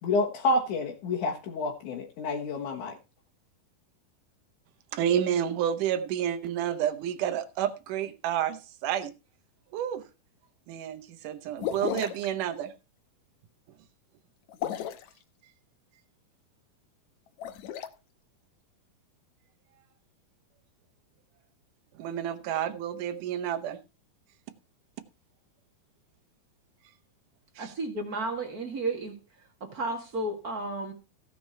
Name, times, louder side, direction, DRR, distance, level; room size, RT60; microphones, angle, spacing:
voice 1, 0.0-3.0, left 2 dB, 60° left, 2.6 m, -29 dB
voice 2, 4.9-9.1 9.7-10.0 10.7-12.7 22.0-23.8 27.6-27.7, right 10 dB, 65° right, 2.4 m, -30 dB
sound 1, 11.6-12.3 14.5-15.1 17.3-17.9, left 10 dB, 85° left, 1.6 m, -33 dB
voice 3, 27.6-29.2 29.6-30.9, right 2 dB, 40° right, 1.4 m, -33 dB
16.5 x 6.0 x 4.4 m
omnidirectional pair, 4.4 m